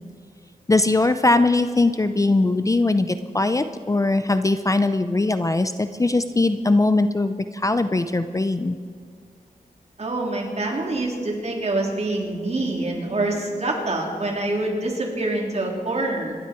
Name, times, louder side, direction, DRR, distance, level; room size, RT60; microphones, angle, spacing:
voice 1, 0.7-8.8, left 2 dB, 20° left, 10 dB, 0.5 m, -20 dB
voice 2, 10.0-16.3, right 2 dB, 45° right, -1 dB, 3.5 m, -26 dB
26.0 x 12.0 x 4.5 m, 2.2 s
wide cardioid pair, 100°, 15 cm